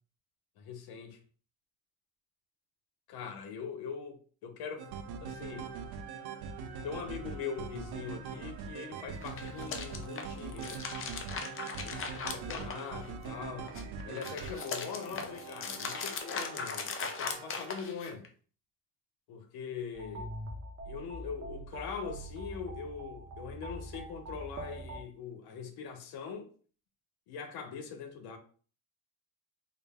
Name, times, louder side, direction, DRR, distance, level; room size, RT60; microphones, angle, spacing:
voice 1, 0.6-1.2 3.1-4.9 5.2-5.7 6.8-10.8 11.8-12.0 12.3-13.7 14.0-18.3 19.3-20.3 20.9-26.5 27.3-28.4, left 6 dB, 85° left, 0.8 m, -42 dB
sound 1, 4.8-17.9, right 6 dB, 85° right, 0.5 m, -43 dB
sound 2, 9.1-13.3 13.6-18.3, left 5 dB, 35° left, 0.5 m, -39 dB
sound 3, 19.9-25.0, right 1 dB, 40° right, 0.7 m, -43 dB
3.7 x 2.1 x 3.4 m
cardioid pair, 145°, 37 cm